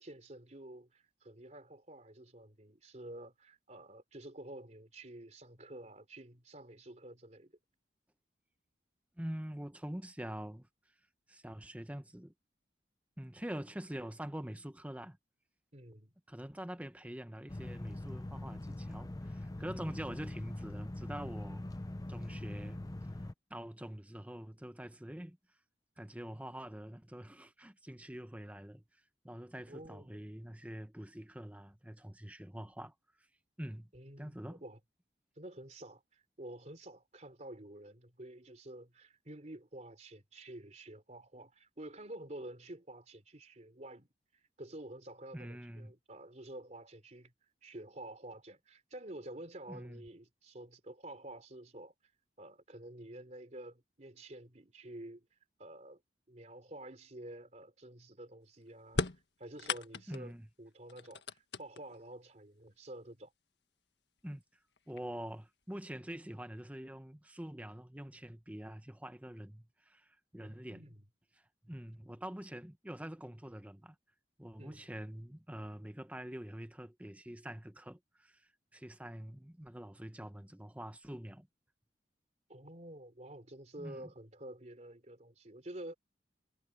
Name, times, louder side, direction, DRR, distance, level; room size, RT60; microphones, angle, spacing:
voice 1, 0.0-7.5 15.7-16.1 29.7-30.3 33.9-34.8 35.4-44.1 44.6-47.3 47.6-51.9 52.4-55.3 55.6-56.0 56.3-59.0 59.4-63.3 70.4-71.0 74.6-74.8 82.5-85.9, right 1 dB, 40° right, 3.5 m, -49 dB
voice 2, 9.2-10.7 11.3-12.3 13.2-15.2 16.3-21.7 22.1-22.8 23.5-25.4 26.0-28.8 29.2-32.9 33.6-33.9 34.2-34.6 45.3-45.9 49.7-50.1 60.1-60.5 64.2-64.4 64.9-70.9 71.6-73.9 74.4-78.4 78.7-81.5 83.8-84.1, equal, 10° right, 1.0 m, -45 dB
sound 1, 17.5-23.3, left 1 dB, 20° left, 0.5 m, -42 dB
sound 2, 58.9-60.3 60.9-62.1 63.1-63.2 64.2-64.3 64.8-65.2, left 3 dB, 75° left, 1.6 m, -37 dB
head